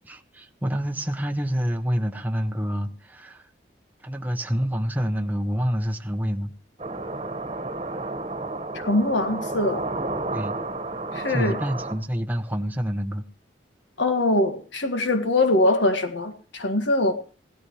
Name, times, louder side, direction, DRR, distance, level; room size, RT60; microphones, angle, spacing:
voice 1, 0.1-3.5 4.0-6.5 10.3-10.6 11.3-13.2, equal, 10° right, 5 dB, 0.6 m, -27 dB
sound 1, 6.8-11.9, right 2 dB, 30° right, 1.3 m, -31 dB
voice 2, 8.7-9.9 11.1-11.6 14.0-17.1, left 2 dB, 85° left, 6 dB, 1.7 m, -23 dB
17.0 x 12.5 x 3.1 m, 0.38 s
head